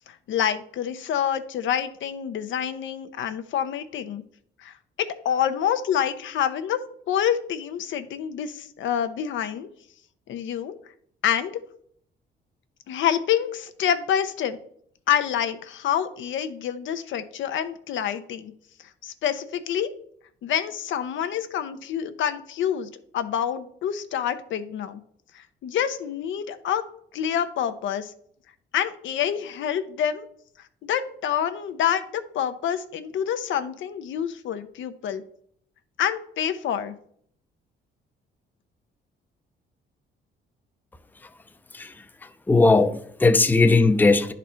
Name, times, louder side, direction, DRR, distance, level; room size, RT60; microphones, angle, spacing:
voice 1, 0.1-4.2 4.6-6.8 7.1-9.7 10.3-10.7 11.2-11.6 12.9-14.6 15.1-18.5 19.0-19.9 20.4-25.0 25.3-26.8 27.1-28.1 28.7-30.3 30.8-35.2 36.0-36.9, left 9 dB, 75° left, 0.7 m, -27 dB
voice 2, 42.5-44.3, left 3 dB, 10° left, 0.5 m, -18 dB
10.0 x 4.0 x 4.3 m
cardioid pair, 90°, 20 cm